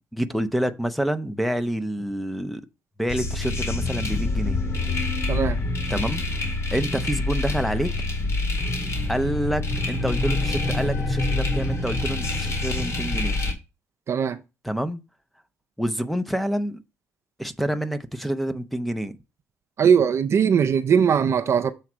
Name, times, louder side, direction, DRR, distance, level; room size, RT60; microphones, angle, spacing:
voice 1, 0.1-2.6 3.0-4.6 5.9-6.2 6.7-7.9 9.1-13.4 14.6-15.0 15.8-16.8 17.4-19.2, equal, ahead, 0.7 m, -27 dB
sound 1, 3.1-13.5, left 2 dB, 55° left, 2.1 m, -26 dB
voice 2, 5.3-5.6 14.1-14.4 19.8-21.7, right 7 dB, 50° right, 0.6 m, -20 dB
7.1 x 3.2 x 6.0 m
supercardioid pair, 75°, 6 cm